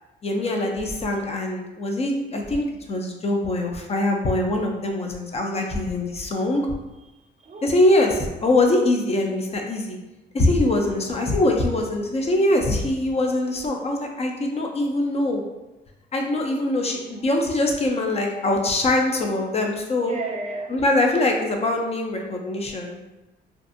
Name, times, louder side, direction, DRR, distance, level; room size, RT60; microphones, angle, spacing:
voice 1, 0.2-6.7 7.6-10.0 10.3-15.4 16.1-20.2 20.7-23.0, left 1 dB, 30° left, 2 dB, 0.5 m, -23 dB
voice 2, 7.1-7.7 17.0-17.4 20.0-20.8, right 3 dB, 35° right, 0 dB, 0.5 m, -34 dB
2.5 x 2.4 x 2.5 m, 1.0 s
cardioid pair, 90°, 20 cm